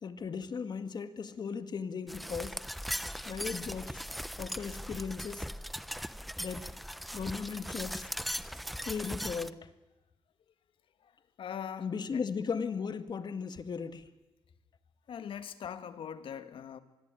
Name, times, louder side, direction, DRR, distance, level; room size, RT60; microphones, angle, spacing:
voice 1, 0.0-2.6 3.2-4.0 4.4-5.5 6.4-6.7 7.1-8.1 8.8-9.7 11.8-14.1, left 5 dB, 50° left, 2.1 m, -37 dB
sound 1, 2.1-9.5, equal, ahead, 0.9 m, -39 dB
voice 2, 11.0-12.2 15.1-16.8, left 8 dB, 75° left, 1.9 m, -42 dB
25.0 x 21.0 x 9.2 m
cardioid pair, 95°, 9 cm